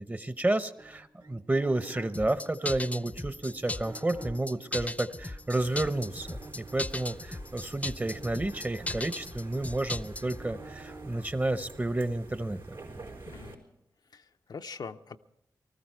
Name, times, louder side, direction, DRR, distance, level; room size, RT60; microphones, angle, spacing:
voice 1, 0.0-12.8, right 2 dB, 25° right, 12 dB, 0.9 m, -31 dB
sound 1, 0.8-5.5 6.2-11.1, right 3 dB, 65° right, 1.8 m, -51 dB
sound 2, 2.1-10.4, left 2 dB, 20° left, 0.5 m, -37 dB
sound 3, 5.6-13.6, right 3 dB, 80° right, 4.3 m, -47 dB
voice 2, 13.3-13.6 14.1-15.2, left 5 dB, 60° left, 7 dB, 0.6 m, -43 dB
19.5 x 13.5 x 4.6 m, 0.83 s
cardioid pair, 40°, 8 cm